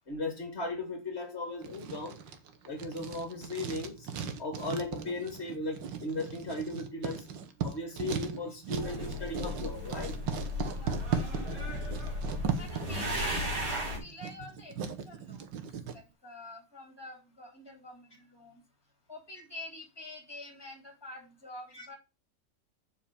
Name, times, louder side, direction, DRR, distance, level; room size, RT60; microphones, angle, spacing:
voice 1, 0.1-2.2 2.7-4.1 4.4-7.3 7.6-10.2 21.7-21.9, left 2 dB, 35° left, 2.0 m, -37 dB
Writing, 1.6-16.0, right 6 dB, 80° right, 1.8 m, -38 dB
sound 1, 8.7-14.0, left 1 dB, 45° right, 3.9 m, -35 dB
voice 2, 10.7-11.1 12.6-18.6 19.1-22.0, left 2 dB, 10° left, 3.0 m, -48 dB
7.3 x 4.9 x 6.9 m
omnidirectional pair, 2.0 m